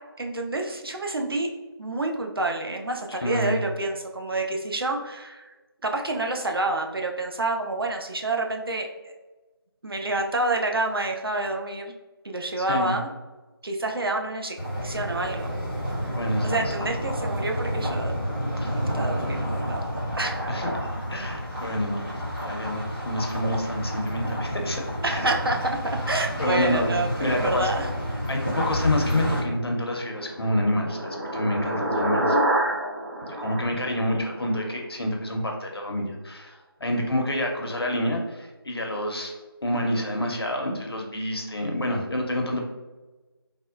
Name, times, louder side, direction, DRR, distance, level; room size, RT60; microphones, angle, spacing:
voice 1, 0.2-1.5 1.8-5.5 5.8-9.1 9.8-11.9 12.2-13.1 13.6-15.5 15.9-16.2 16.4-18.1 18.7-19.8 20.1-20.7 25.0-27.9, right 2 dB, 65° right, 3 dB, 0.5 m, -28 dB
voice 2, 3.2-3.6 12.6-13.0 16.1-16.9 18.6-18.7 20.5-20.7 21.1-25.3 26.1-27.7 28.3-32.4 33.3-39.3 39.6-42.6, left 1 dB, 75° left, 1 dB, 0.7 m, -28 dB
sound 1, 14.6-29.4, equal, 5° right, 0.5 m, -30 dB
sound 2, 29.8-34.6, right 1 dB, 45° right, 1.1 m, -27 dB
3.4 x 2.1 x 2.4 m, 1.2 s
figure-of-eight pair, 170°, 13 cm